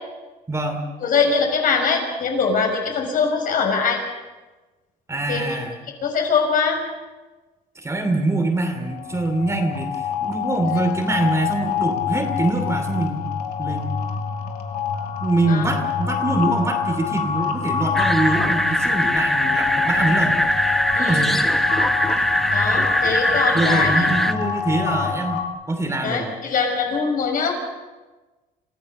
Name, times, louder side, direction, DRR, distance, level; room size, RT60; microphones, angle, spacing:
voice 1, 0.5-0.9 5.1-5.8 7.8-13.3 13.6-13.9 15.2-20.5 20.9-21.5 23.5-25.4 25.7-26.4, right 2 dB, 15° right, 3 dB, 2.8 m, -24 dB
voice 2, 1.0-4.0 5.3-5.6 6.0-6.8 15.5-15.6 20.9-21.3 22.5-24.0 26.0-27.5, left 5 dB, 55° left, 3 dB, 6.1 m, -22 dB
sound 1, 8.8-25.4, left 7 dB, 70° left, 2.5 m, -26 dB
sound 2, 17.9-24.3, equal, ahead, 1.2 m, -21 dB
29.0 x 15.5 x 6.6 m, 1.2 s
cardioid pair, 110°, 17 cm